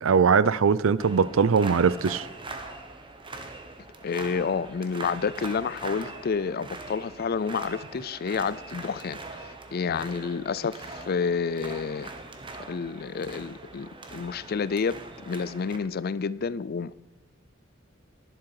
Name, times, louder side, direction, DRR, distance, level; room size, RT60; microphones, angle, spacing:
voice 1, 0.0-2.3, right 5 dB, 90° right, 0.5 m, -21 dB
sound 1, 1.0-15.8, right 2 dB, 25° right, 1.2 m, -42 dB
voice 2, 4.0-12.1 12.7-15.0 15.2-16.9, left 5 dB, 50° left, 0.4 m, -29 dB
11.5 x 11.0 x 4.8 m
head